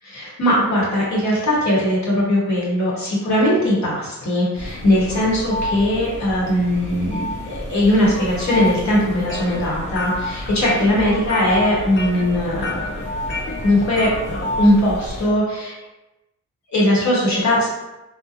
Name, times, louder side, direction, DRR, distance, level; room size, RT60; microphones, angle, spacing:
voice 1, 0.1-12.8 13.3-15.7 16.7-17.7, left 1 dB, 65° left, -5 dB, 1.0 m, -19 dB
sound 1, 4.5-15.3, left 1 dB, 25° left, 0.8 m, -30 dB
sound 2, 9.0-14.3, left 2 dB, 40° left, 0.4 m, -32 dB
2.7 x 2.1 x 2.5 m, 1.0 s
wide cardioid pair, 145°, 30 cm